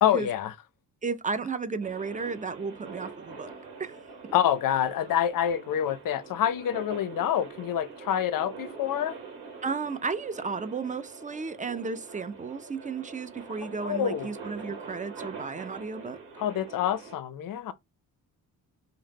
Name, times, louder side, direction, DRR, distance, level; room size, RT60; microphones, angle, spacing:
voice 1, 0.0-0.5 4.3-9.1 13.8-14.3 16.4-17.7, left 10 dB, 55° left, 0.5 m, -27 dB
voice 2, 1.0-3.5 3.8-4.0 4.2-4.3 9.6-16.2, right 4 dB, 20° right, 0.3 m, -33 dB
sound 1, 1.8-17.2, right 4 dB, 90° right, 1.0 m, -44 dB
2.6 x 2.0 x 3.4 m
supercardioid pair, 50°, 41 cm